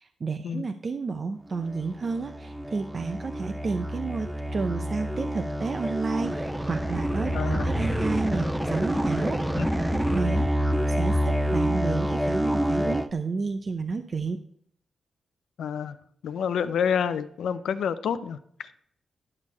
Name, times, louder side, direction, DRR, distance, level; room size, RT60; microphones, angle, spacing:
voice 1, 0.0-9.6 9.9-14.4, right 4 dB, 50° right, 7 dB, 0.7 m, -31 dB
sound 1, 1.7-13.1, equal, 10° right, 0.8 m, -27 dB
voice 2, 7.3-7.7 9.6-10.0 15.6-16.0 16.2-18.8, left 7 dB, 85° left, 12 dB, 0.6 m, -29 dB
11.0 x 6.3 x 4.3 m, 0.66 s
cardioid pair, 70°, 0 cm